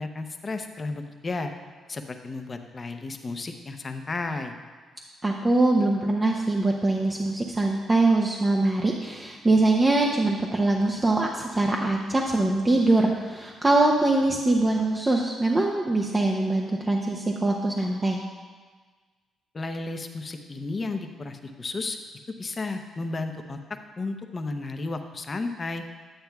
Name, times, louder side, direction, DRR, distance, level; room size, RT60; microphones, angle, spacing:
voice 1, 0.0-1.5 1.9-4.5 19.5-22.0 22.4-23.6 24.0-25.8, left 3 dB, 30° left, 6 dB, 0.6 m, -33 dB
voice 2, 5.2-18.2, right 2 dB, 20° right, 0 dB, 0.6 m, -23 dB
9.2 x 8.9 x 2.3 m, 1.5 s
cardioid pair, 90°, 0 cm